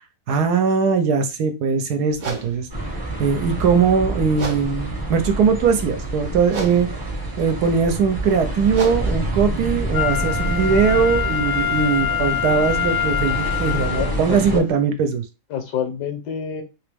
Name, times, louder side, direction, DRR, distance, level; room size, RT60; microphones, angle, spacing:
voice 1, 0.3-2.7 3.2-7.0 7.4-15.2, right 6 dB, 70° right, 7 dB, 1.1 m, -20 dB
sound 1, 2.1-10.9, right 2 dB, 50° right, 0.5 m, -37 dB
sound 2, 2.7-14.6, right 1 dB, 20° right, 0.7 m, -27 dB
Wind instrument woodwind instrument, 9.9-14.2 14.7-14.8, left 9 dB, 40° left, 0.6 m, -24 dB
voice 2, 13.9-14.6 15.5-16.6, left 8 dB, 75° left, 6 dB, 1.5 m, -27 dB
3.2 x 2.9 x 3.4 m, 0.29 s
omnidirectional pair, 1.8 m